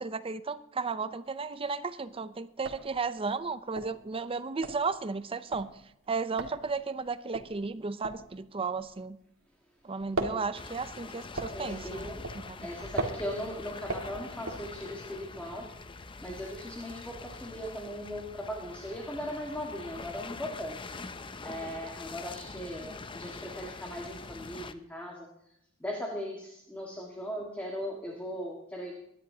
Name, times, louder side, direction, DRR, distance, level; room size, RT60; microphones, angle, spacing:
voice 1, 0.0-5.7 6.1-9.2 9.8-12.1 12.4-12.6, right 4 dB, 25° right, 13 dB, 0.6 m, -34 dB
sound 1, 1.3-1.8 2.1-2.2 2.5-9.6 9.8-15.2, right 3 dB, 70° right, 1.8 m, -38 dB
sound 2, 10.5-24.7, left 3 dB, 25° left, 0.6 m, -44 dB
voice 2, 11.5-12.3 12.6-15.8 16.2-20.8 21.4-25.3 25.8-28.9, equal, 5° left, 0 dB, 1.6 m, -38 dB
22.5 x 10.5 x 2.8 m, 0.81 s
head